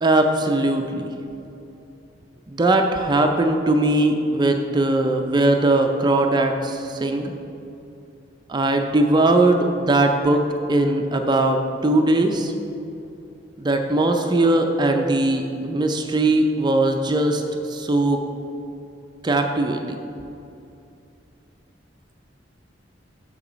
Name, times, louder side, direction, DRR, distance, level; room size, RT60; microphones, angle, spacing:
voice 1, 0.0-1.1 2.5-7.3 8.5-12.5 13.6-18.2 19.2-20.0, right 2 dB, 25° right, 4 dB, 0.4 m, -20 dB
7.0 x 6.8 x 5.0 m, 2.7 s
head